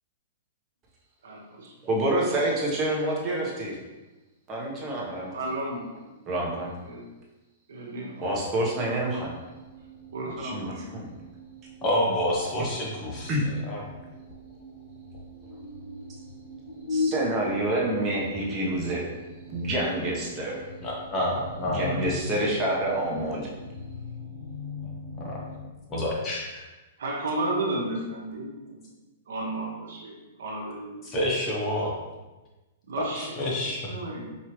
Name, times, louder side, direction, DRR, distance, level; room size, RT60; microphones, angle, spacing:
voice 1, 1.2-1.7 5.3-6.1 6.5-7.0 7.7-8.3 10.1-11.0 27.0-28.8 29.3-31.1 32.9-34.3, right 2 dB, 75° right, -2 dB, 1.1 m, -33 dB
voice 2, 1.8-3.8 4.5-5.3 6.2-6.7 8.2-9.3 10.4-11.1 13.3-13.4 16.9-19.1 19.5-20.6 21.6-23.5, right 1 dB, 30° right, -3 dB, 1.1 m, -27 dB
sound 1, 8.8-25.7, left 3 dB, 55° left, 1.1 m, -39 dB
voice 3, 11.8-13.3 13.7-13.8 20.8-22.0 25.1-25.4 25.9-26.6 31.0-31.9 33.1-33.8, left 1 dB, 25° left, -4 dB, 1.1 m, -28 dB
4.7 x 2.7 x 3.1 m, 1.1 s
hypercardioid pair, 130°, 0 cm